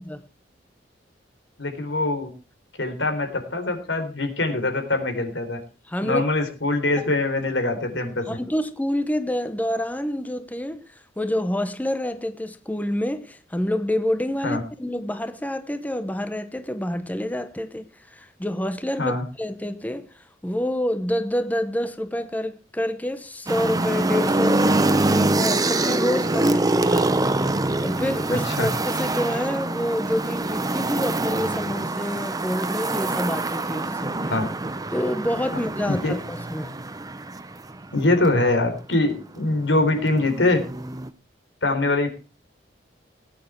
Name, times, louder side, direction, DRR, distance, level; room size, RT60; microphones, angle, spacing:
voice 1, 1.6-2.3 2.8-5.6 6.0-8.4 14.4-14.6 19.0-19.3 28.3-28.7 34.3-34.4 36.0-36.1 37.9-40.6 41.6-42.1, left 2 dB, 85° left, 3.9 m, -23 dB
voice 2, 5.9-6.2 7.0-7.1 8.3-10.8 11.2-27.2 27.8-34.3 34.9-36.8, left 1 dB, 10° left, 0.7 m, -27 dB
sound 1, 23.5-38.3 39.4-41.1, right 2 dB, 20° right, 0.8 m, -25 dB
18.5 x 9.1 x 4.5 m
head